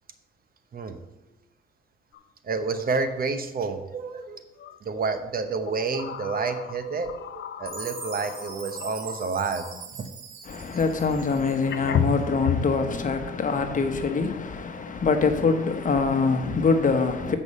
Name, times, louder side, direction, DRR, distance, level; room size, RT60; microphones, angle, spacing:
sound 1, 2.1-2.2 2.6-2.8 4.6-4.8 5.6-9.9 11.1-11.2 11.7-12.8, left 7 dB, 65° left, 0.6 m, -32 dB
voice 1, 2.4-4.4 4.8-9.7 9.9-10.1, right 4 dB, 45° right, 0.9 m, -29 dB
Chime, 7.7-11.9, right 5 dB, 90° right, 1.3 m, -42 dB
voice 2, 10.4-17.4, left 4 dB, 40° left, 1.1 m, -24 dB
8.1 x 5.4 x 5.5 m
cardioid pair, 90°, 20 cm